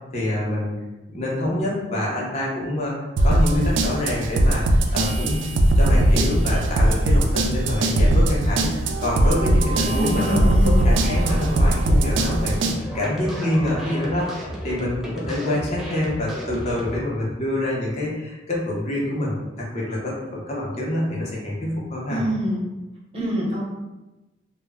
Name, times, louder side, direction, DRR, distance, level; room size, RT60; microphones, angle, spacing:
voice 1, 0.1-0.8 1.1-2.9 3.2-5.4 5.8-10.4 10.6-12.7 12.9-19.3 19.7-22.2, left 1 dB, 40° left, -4 dB, 0.7 m, -26 dB
sound 1, 3.2-12.8, right 1 dB, 85° right, 0.3 m, -19 dB
sound 2, 9.7-17.0, equal, ahead, 0.3 m, -35 dB
voice 2, 9.9-10.9 22.1-22.6 23.1-23.6, equal, 35° right, -5 dB, 0.7 m, -25 dB
2.1 x 2.1 x 3.5 m, 1.1 s
head